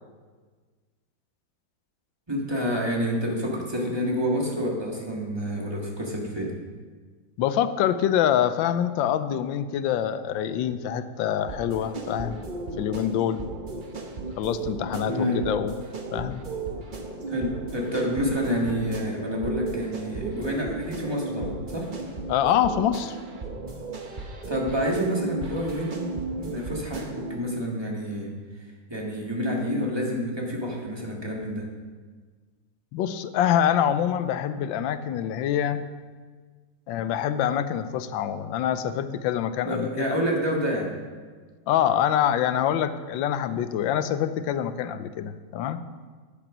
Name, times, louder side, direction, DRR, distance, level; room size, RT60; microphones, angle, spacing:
voice 1, 2.3-6.5 15.0-15.4 17.3-21.9 24.5-26.0 26.4-28.3 28.9-31.7 39.7-40.9, equal, 15° right, -2 dB, 1.6 m, -28 dB
voice 2, 7.4-12.4 12.8-13.4 14.4-15.1 15.5-15.7 16.1-16.4 22.3-23.2 32.9-35.8 36.9-40.1 41.7-45.8, left 10 dB, 90° left, 12 dB, 1.3 m, -25 dB
sound 1, 11.4-27.4, right 2 dB, 40° right, 0.7 m, -35 dB
8.9 x 8.1 x 6.1 m, 1.5 s
omnidirectional pair, 2.0 m